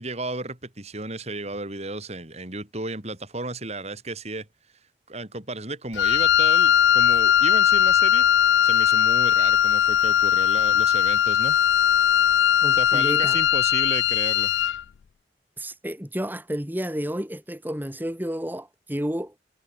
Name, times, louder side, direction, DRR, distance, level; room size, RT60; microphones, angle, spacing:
voice 1, 0.0-4.5 5.1-8.2 8.6-11.6 12.7-14.5, right 2 dB, 40° right, 5.1 m, -34 dB
Wind instrument woodwind instrument, 5.9-14.8, left 10 dB, 85° left, 0.4 m, -19 dB
voice 2, 12.6-13.4 15.6-19.4, equal, 10° right, 2.7 m, -31 dB
head